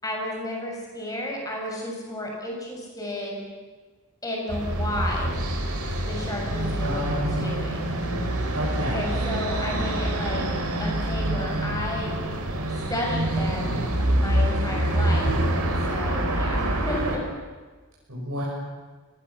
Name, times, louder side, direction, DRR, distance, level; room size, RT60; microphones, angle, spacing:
voice 1, 0.0-3.4 4.2-5.4 6.0-7.8 8.9-10.5 10.8-12.2 12.7-13.8 14.2-17.3, left 1 dB, 15° left, -1 dB, 6.5 m, -32 dB
sound 1, 4.5-17.2, right 1 dB, 85° right, 4.2 m, -26 dB
voice 2, 6.8-7.5 8.5-9.0 18.1-18.4, equal, 70° right, -6 dB, 6.6 m, -30 dB
28.5 x 19.5 x 7.3 m, 1.3 s
head